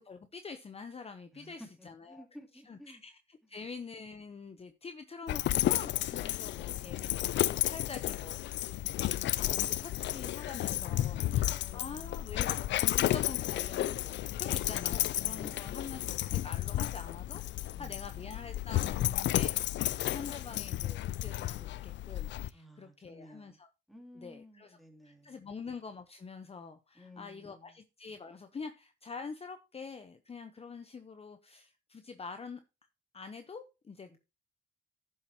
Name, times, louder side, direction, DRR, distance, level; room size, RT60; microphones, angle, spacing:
voice 1, 0.0-2.2 2.7-3.1 3.5-8.4 9.0-19.6 20.0-23.7 24.2-24.7 25.0-32.6 33.1-34.2, left 5 dB, 30° left, 0.9 m, -46 dB
voice 2, 1.3-3.0 3.4-3.6 11.1-12.7 15.1-15.9 17.7-18.1 22.5-23.6 23.9-25.5 26.9-27.8 34.1-34.2, equal, ahead, 3.0 m, -54 dB
Dog, 5.3-22.5, left 14 dB, 65° left, 0.4 m, -32 dB
10.5 x 7.4 x 2.9 m
cardioid pair, 90°, 20 cm